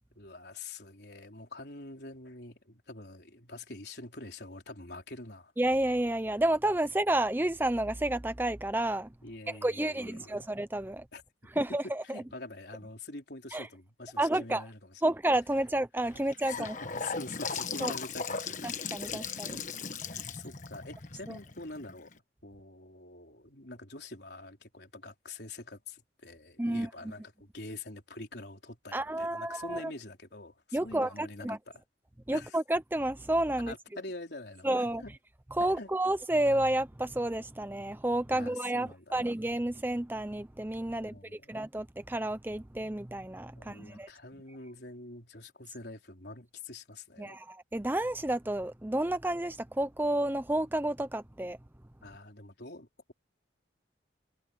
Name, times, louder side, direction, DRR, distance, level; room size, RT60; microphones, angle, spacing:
voice 1, 0.2-5.5 9.2-10.5 11.1-11.2 11.5-15.0 16.1-16.2 16.5-18.8 19.1-22.1 22.4-31.8 32.3-32.6 33.7-35.1 35.8-35.9 38.3-39.3 41.0-41.6 43.6-47.4 52.0-53.1, left 2 dB, 60° left, 4.2 m, -45 dB
voice 2, 5.6-9.1 9.5-11.1 11.6-12.2 13.5-13.7 14.2-14.6 15.0-16.7 17.8-17.9 18.6-19.6 26.6-26.9 28.9-29.9 30.7-31.6 32.3-33.7 34.6-35.0 35.6-44.1 47.2-51.6, right 1 dB, 10° right, 0.5 m, -30 dB
Gurgling / Sink (filling or washing) / Bathtub (filling or washing), 16.0-22.1, left 5 dB, 40° left, 1.4 m, -38 dB
head